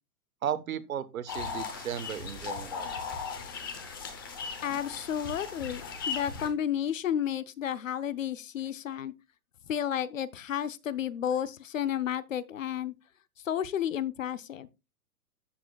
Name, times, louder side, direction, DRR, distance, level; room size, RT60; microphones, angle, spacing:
voice 1, 0.4-2.9, right 9 dB, 60° right, 1.3 m, -35 dB
sound 1, 1.3-6.5, left 5 dB, 15° left, 0.7 m, -37 dB
voice 2, 4.6-5.8 6.1-9.1 9.7-12.9 13.4-14.7, left 9 dB, 55° left, 0.8 m, -32 dB
13.0 x 7.7 x 2.3 m
hypercardioid pair, 175°, 47 cm